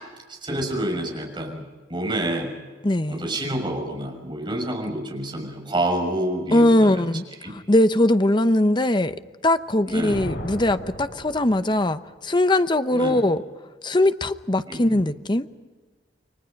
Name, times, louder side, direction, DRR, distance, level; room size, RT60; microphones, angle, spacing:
voice 1, 0.3-2.5 3.1-7.1 7.4-7.5 9.9-10.3 12.9-13.2 14.7-15.1, right 1 dB, 25° right, 6.5 m, -28 dB
voice 2, 2.8-3.3 6.5-9.2 9.4-13.4 13.8-15.5, left 1 dB, 25° left, 0.9 m, -21 dB
Thunder, 9.6-12.0, equal, 70° left, 7.0 m, -36 dB
30.0 x 23.0 x 5.3 m
head